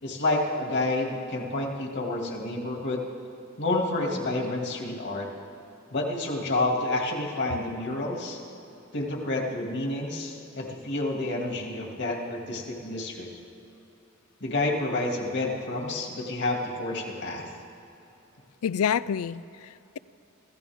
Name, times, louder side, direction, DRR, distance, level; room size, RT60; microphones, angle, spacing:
voice 1, 0.0-3.1 3.6-5.3 5.9-8.4 8.9-13.3 14.4-17.5, left 2 dB, 55° left, 0 dB, 2.3 m, -29 dB
voice 2, 18.6-20.0, left 8 dB, 75° left, 19 dB, 0.4 m, -28 dB
26.5 x 15.0 x 3.6 m, 3.0 s
head